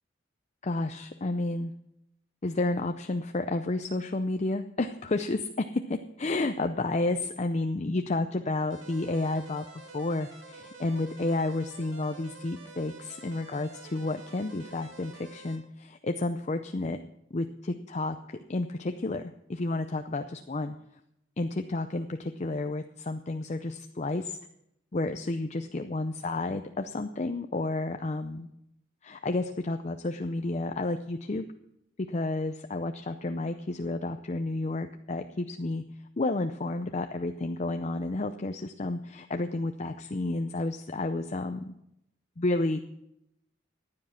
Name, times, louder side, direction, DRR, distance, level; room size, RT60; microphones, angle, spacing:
voice 1, 0.6-1.7 2.4-9.6 9.9-17.0 17.3-20.8 21.4-24.4 24.9-28.5 29.0-31.4 32.1-35.8 36.2-41.8 42.4-42.8, left 2 dB, 35° left, 7 dB, 0.6 m, -31 dB
sound 1, 8.7-15.6, right 3 dB, 85° right, 2.8 m, -49 dB
15.0 x 9.8 x 5.8 m, 0.79 s
head